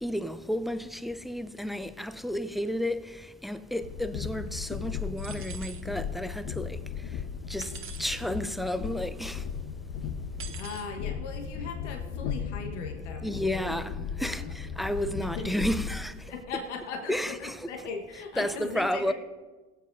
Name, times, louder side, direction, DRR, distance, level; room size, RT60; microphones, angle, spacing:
voice 1, 0.0-7.2 7.5-9.5 13.2-16.3 17.1-17.7 18.4-19.1, equal, ahead, 0.3 m, -32 dB
Train, 3.8-16.0, left 7 dB, 45° left, 0.9 m, -36 dB
sound 1, 5.2-5.8 7.6-8.2 10.4-10.9, right 7 dB, 35° right, 1.1 m, -44 dB
voice 2, 10.6-14.5 15.2-15.5 16.2-19.1, left 4 dB, 80° left, 1.3 m, -39 dB
22.0 x 7.6 x 2.6 m
hypercardioid pair, 85°, 35 cm